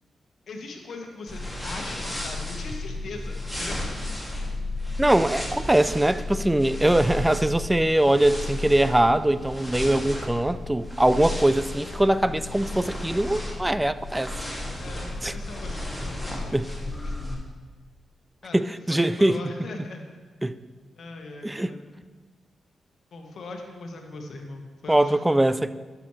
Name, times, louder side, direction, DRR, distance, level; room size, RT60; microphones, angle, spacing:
voice 1, 0.5-3.8 14.8-17.3 18.4-20.0 21.0-21.8 23.1-25.2, left 2 dB, 65° left, 3 dB, 1.2 m, -40 dB
sound 1, 1.3-17.3, left 1 dB, 5° left, 2.3 m, -33 dB
voice 2, 5.0-14.3 15.2-15.3 16.5-16.7 18.5-19.4 20.4-20.6 21.4-21.7 24.9-25.7, right 1 dB, 15° right, 15 dB, 0.4 m, -22 dB
12.5 x 6.0 x 3.2 m, 1.3 s
supercardioid pair, 40°, 0 cm